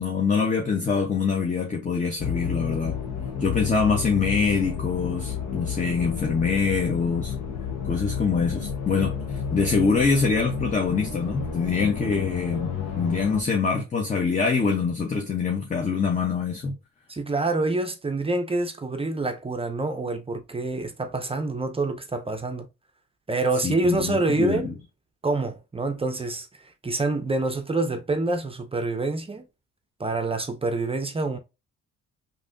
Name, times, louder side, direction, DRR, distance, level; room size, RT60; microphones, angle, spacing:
voice 1, 0.0-3.0 3.4-7.3 7.8-16.8 23.6-24.7, left 5 dB, 25° left, 0.7 m, -24 dB
sound 1, 2.2-13.4, left 7 dB, 70° left, 0.8 m, -31 dB
voice 2, 17.1-22.7 23.3-24.7 25.2-26.5 26.8-29.4 30.0-31.4, right 2 dB, 20° right, 0.5 m, -26 dB
3.3 x 2.6 x 2.5 m
cardioid pair, 90°, 30 cm